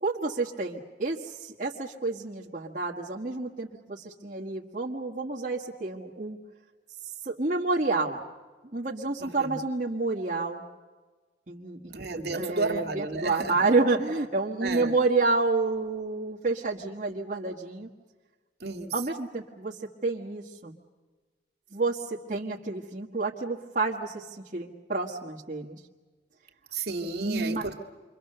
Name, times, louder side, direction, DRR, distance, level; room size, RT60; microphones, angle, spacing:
voice 1, 0.0-6.4 7.2-8.2 8.7-10.6 11.5-11.8 12.1-17.9 18.9-19.8 20.0-20.8 21.7-24.2 24.5-25.8 27.2-27.6, right 3 dB, 45° right, -3 dB, 1.6 m, -29 dB
voice 2, 9.2-9.6 11.9-13.6 14.6-14.9 18.6-18.9 26.7-27.8, right 3 dB, 70° right, 4 dB, 2.1 m, -32 dB
28.5 x 24.0 x 6.7 m, 1.4 s
head